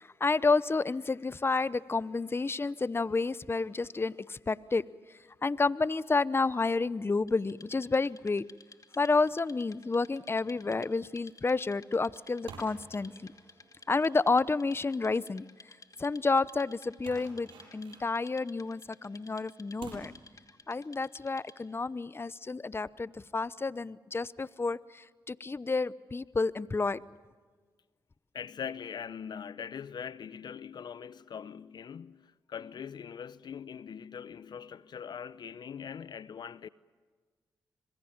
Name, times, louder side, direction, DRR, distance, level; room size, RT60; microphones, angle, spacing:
voice 1, 0.0-4.8 5.4-8.4 9.0-13.1 13.9-15.5 16.0-20.1 20.7-27.0, left 3 dB, 30° left, 0.8 m, -30 dB
Wood, 7.3-21.8, left 3 dB, 45° left, 2.5 m, -56 dB
sound 1, 9.3-9.6 10.0-10.3 11.3-11.5 11.8-15.6 16.0-16.1 16.4-16.5 17.0-18.8 19.2-19.3 19.8-19.9, right 4 dB, 90° right, 7.4 m, -51 dB
voice 2, 28.3-36.7, left 7 dB, 65° left, 0.7 m, -42 dB
26.5 x 22.5 x 7.3 m
supercardioid pair, 50°, 8 cm